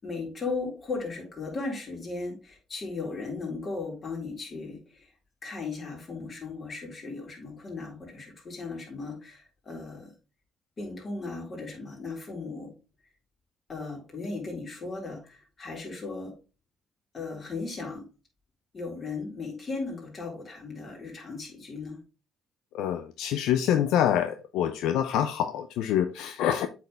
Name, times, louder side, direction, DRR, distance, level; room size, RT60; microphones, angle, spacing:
voice 1, 0.0-5.1 5.4-10.1 10.8-12.7 13.7-16.3 17.1-18.1 18.7-22.0, left 3 dB, 40° left, 3.9 m, -36 dB
voice 2, 22.7-26.7, left 10 dB, 80° left, 0.5 m, -26 dB
8.1 x 4.4 x 3.3 m
supercardioid pair, 75°, 0 cm